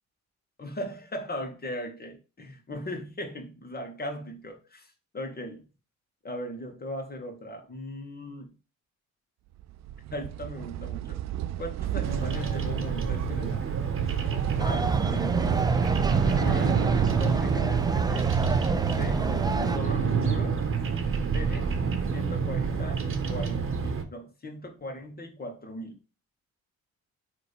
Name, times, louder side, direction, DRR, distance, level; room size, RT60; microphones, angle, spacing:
voice 1, 0.6-5.6 6.2-8.6 10.1-11.2 11.6-13.7 14.6-15.7 16.4-16.8 17.1-18.3 19.0-19.3 19.7-20.6 21.2-21.7 22.1-26.0, left 1 dB, 30° left, 2.1 m, -38 dB
sound 1, 9.6-20.6, right 13 dB, 65° right, 0.4 m, -34 dB
Bird vocalization bird call bird song, 12.0-24.0, right 5 dB, 45° right, 1.3 m, -27 dB
sound 2, 14.6-19.8, right 3 dB, 15° right, 0.5 m, -31 dB
9.3 x 3.6 x 3.5 m
cardioid pair, 90°, 30 cm